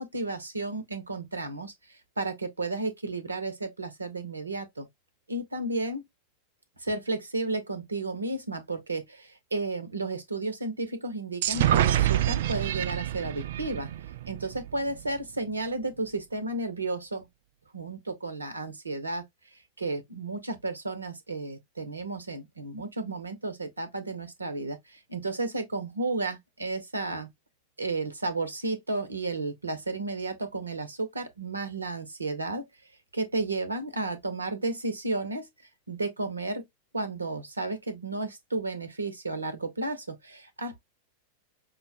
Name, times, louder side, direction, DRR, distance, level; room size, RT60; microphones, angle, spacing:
voice 1, 0.0-4.9 5.3-6.0 6.8-13.9 14.3-17.3 17.7-27.3 27.8-32.6 33.1-35.5 35.9-36.6 36.9-40.8, right 2 dB, 80° right, 0.8 m, -33 dB
sound 1, 11.4-15.1, right 12 dB, 55° right, 0.3 m, -27 dB
5.3 x 2.2 x 2.7 m
figure-of-eight pair, 90°, 0 cm